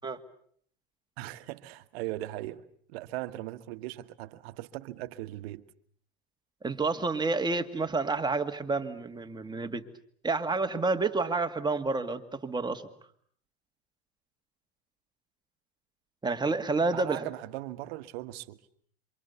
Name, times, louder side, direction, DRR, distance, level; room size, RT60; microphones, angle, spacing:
voice 1, 1.2-2.6 2.9-5.6 16.9-18.6, right 16 dB, 70° right, 1.4 m, -39 dB
voice 2, 6.6-9.9 10.2-12.8 16.2-17.3, right 3 dB, 15° right, 2.2 m, -29 dB
27.5 x 25.5 x 7.0 m
supercardioid pair, 105°, 31 cm